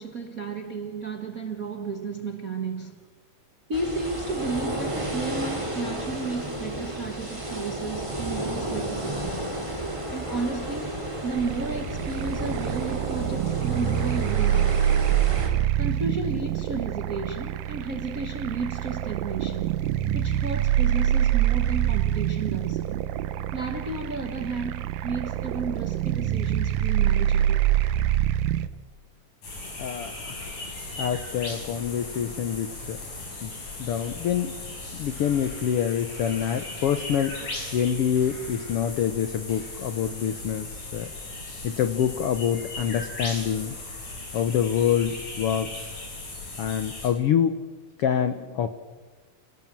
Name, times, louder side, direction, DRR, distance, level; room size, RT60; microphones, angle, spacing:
voice 1, 0.0-3.0 3.7-9.5 10.1-10.9 11.2-14.9 15.8-19.8 20.1-22.8 23.5-27.7, right 4 dB, 50° right, 4 dB, 1.0 m, -33 dB
sound 1, 3.7-15.5, right 1 dB, 10° right, 3.1 m, -32 dB
sound 2, 11.3-28.7, right 11 dB, 80° right, 2.4 m, -25 dB
sound 3, 29.4-47.1, left 2 dB, 60° left, 7.1 m, -37 dB
voice 2, 29.8-30.7 31.0-33.0 33.4-33.5 33.8-34.6 34.9-37.4 37.7-41.1 41.6-43.8 44.3-46.0 46.6-47.5 48.0-48.7, left 9 dB, 85° left, 10 dB, 1.3 m, -26 dB
29.0 x 18.0 x 7.5 m, 1.3 s
omnidirectional pair, 4.0 m